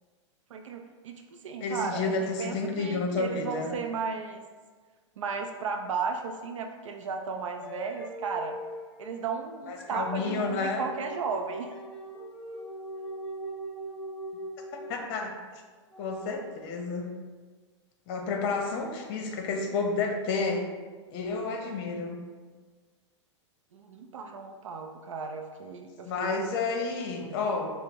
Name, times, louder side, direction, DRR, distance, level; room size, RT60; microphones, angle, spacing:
voice 1, 0.5-2.1 2.4-4.4 5.2-8.6 9.0-11.7 23.7-26.4 27.2-27.5, right 5 dB, 85° right, 4 dB, 0.4 m, -35 dB
voice 2, 1.6-3.7 9.7-10.9 14.7-15.3 16.0-17.1 18.1-20.7 21.1-22.2 26.0-27.7, left 3 dB, 50° left, 3 dB, 0.7 m, -30 dB
sound 1, 7.6-15.2 15.9-16.4, right 1 dB, ahead, 0.4 m, -41 dB
5.7 x 2.0 x 3.0 m, 1.5 s
hypercardioid pair, 125°, 16 cm